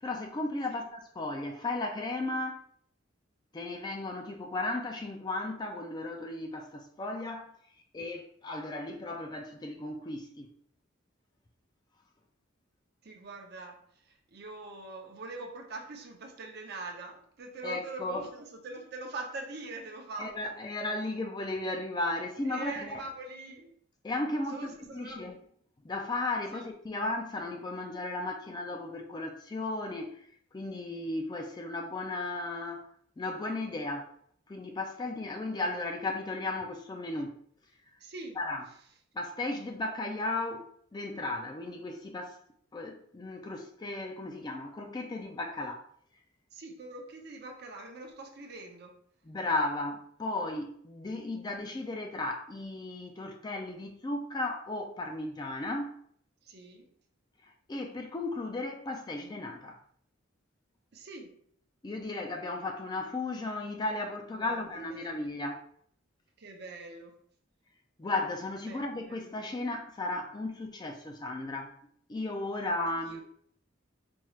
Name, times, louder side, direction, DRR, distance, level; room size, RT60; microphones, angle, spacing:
voice 1, 0.0-2.6 3.5-7.5 7.9-10.5 17.6-18.3 20.2-23.0 24.0-25.4 25.8-32.9 33.2-34.2 34.5-37.4 38.4-38.7 39.1-42.4 42.7-45.8 49.2-56.0 57.4-59.8 61.8-65.7 68.0-71.7 72.1-73.2, left 2 dB, 20° left, 0.3 m, -35 dB
voice 2, 13.0-20.5 22.5-23.7 24.5-25.4 26.5-26.7 38.0-38.4 46.5-49.0 56.4-56.9 60.9-61.4 64.4-65.1 66.4-67.2 68.7-69.3 73.1-73.2, right 2 dB, 55° right, 0.7 m, -43 dB
4.4 x 2.4 x 3.1 m
head